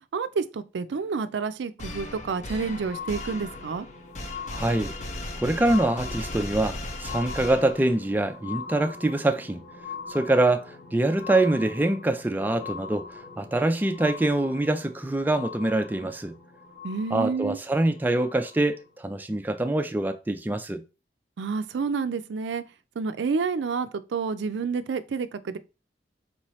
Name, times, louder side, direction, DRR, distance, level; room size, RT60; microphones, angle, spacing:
voice 1, 0.1-3.9 16.8-17.6 21.4-22.6 23.0-25.6, right 5 dB, 90° right, 0.4 m, -29 dB
sound 1, 1.8-8.1, left 1 dB, 45° left, 0.7 m, -37 dB
sound 2, 2.0-18.8 19.6-19.7, left 5 dB, 60° left, 1.3 m, -42 dB
voice 2, 4.5-4.9 5.4-9.6 10.1-13.1 13.4-16.3 17.1-20.8, right 2 dB, 10° right, 0.4 m, -24 dB
4.5 x 2.8 x 3.0 m
head